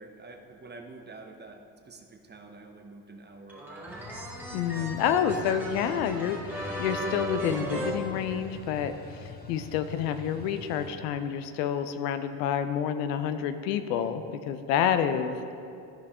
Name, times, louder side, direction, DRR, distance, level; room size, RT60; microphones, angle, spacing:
voice 1, 0.0-4.1 4.7-5.2, right 3 dB, 20° right, 4 dB, 0.9 m, -48 dB
sound 1, 3.5-8.9, equal, 5° right, 1.8 m, -37 dB
sound 2, 3.9-10.9, left 3 dB, 20° left, 1.1 m, -45 dB
voice 2, 4.5-15.4, left 8 dB, 85° left, 9 dB, 0.7 m, -29 dB
13.5 x 4.8 x 3.6 m, 2.5 s
supercardioid pair, 80°, 47 cm